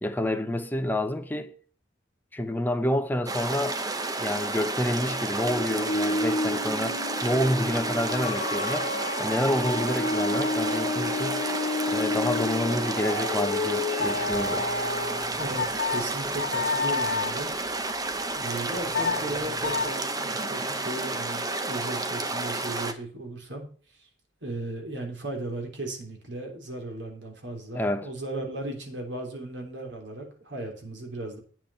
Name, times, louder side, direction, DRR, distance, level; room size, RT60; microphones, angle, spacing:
voice 1, 0.0-1.5 2.3-3.8 4.2-8.9 9.2-11.4 11.9-14.7 27.7-28.1, left 1 dB, 10° left, 0.9 m, -28 dB
sound 1, 3.3-22.9, right 2 dB, 20° right, 0.9 m, -31 dB
sound 2, 4.8-15.2, left 2 dB, 40° left, 1.9 m, -30 dB
sound 3, 14.0-17.4 18.6-19.9, left 5 dB, 75° left, 1.8 m, -31 dB
voice 2, 15.4-17.5 18.3-23.7 24.0-24.1 24.4-31.4, right 2 dB, 70° right, 3.2 m, -36 dB
9.0 x 7.6 x 4.5 m
head